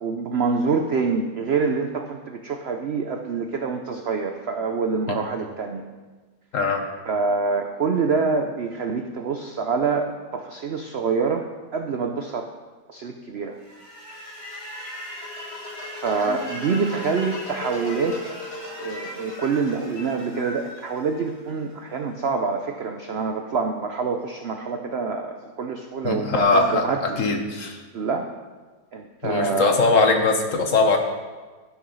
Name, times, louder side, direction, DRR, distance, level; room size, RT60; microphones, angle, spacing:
voice 1, 0.0-5.8 7.1-11.4 11.7-12.5 12.9-13.6 15.9-18.2 18.8-27.2 27.9-28.3 28.9-29.8, right 5 dB, 80° right, 5 dB, 0.5 m, -26 dB
sound 1, 13.6-21.7, left 2 dB, 35° left, 2.9 m, -36 dB
voice 2, 26.0-27.8 29.2-31.0, left 3 dB, 50° left, 4 dB, 1.2 m, -21 dB
12.5 x 6.1 x 5.5 m, 1.3 s
omnidirectional pair, 1.9 m